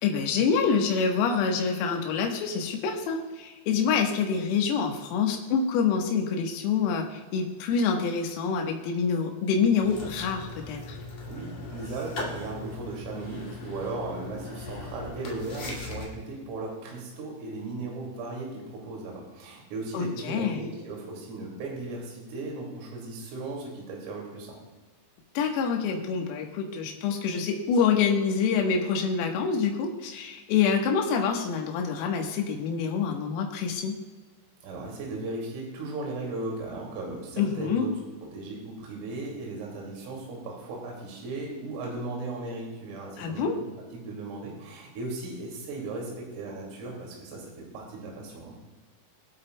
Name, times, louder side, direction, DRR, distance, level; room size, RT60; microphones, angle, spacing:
voice 1, 0.0-11.0 19.9-20.6 25.4-33.9 37.4-37.9 43.2-43.6, left 6 dB, 90° left, 2 dB, 4.0 m, -26 dB
sound 1, 9.8-16.1, left 3 dB, 45° left, 2.3 m, -39 dB
voice 2, 11.2-24.6 34.6-38.0 38.3-43.5 43.9-48.6, right 2 dB, 75° right, -1 dB, 4.9 m, -37 dB
24.0 x 8.3 x 2.2 m, 1.3 s
omnidirectional pair, 6.0 m